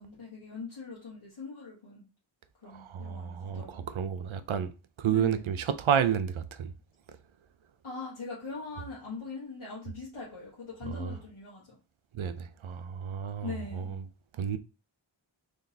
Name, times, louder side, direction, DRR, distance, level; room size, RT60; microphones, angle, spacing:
voice 1, 0.0-2.1 2.6-3.9 5.1-5.5 7.8-11.8 13.4-14.0, left 4 dB, 80° left, 1.3 m, -42 dB
voice 2, 2.7-4.7 5.0-6.7 10.9-11.1 12.1-13.5 13.8-13.9 14.4-14.6, right 8 dB, 80° right, 0.5 m, -30 dB
3.8 x 3.3 x 2.7 m
wide cardioid pair, 50°, 48 cm